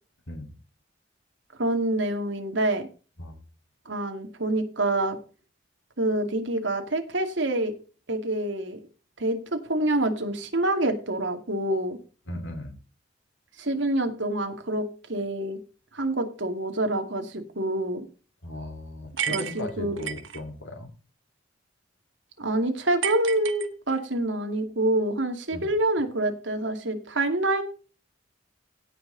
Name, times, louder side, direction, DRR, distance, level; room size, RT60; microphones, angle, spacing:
voice 1, 1.6-2.9 3.9-5.2 6.0-7.7 8.1-8.8 9.2-12.0 13.6-15.6 15.9-18.1 19.3-20.0 22.4-27.6, right 1 dB, 75° right, 5 dB, 2.3 m, -27 dB
voice 2, 12.3-12.7 18.4-20.9 25.5-25.7, left 1 dB, 80° left, 5 dB, 2.9 m, -37 dB
sound 1, 19.2-20.4 23.0-24.2, right 9 dB, 90° right, 1.2 m, -32 dB
17.5 x 5.8 x 4.0 m, 0.35 s
head